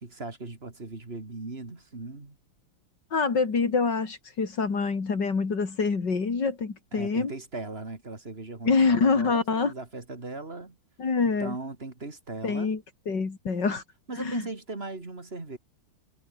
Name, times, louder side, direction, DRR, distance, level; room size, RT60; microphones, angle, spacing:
voice 1, 0.0-2.4 6.9-10.8 11.2-12.8 14.1-15.6, right 3 dB, 30° right, 3.2 m, -38 dB
voice 2, 3.1-7.3 8.7-9.7 11.0-11.6 12.4-12.8 13.1-13.8 14.2-14.4, left 4 dB, 65° left, 3.6 m, -25 dB
omnidirectional pair, 2.0 m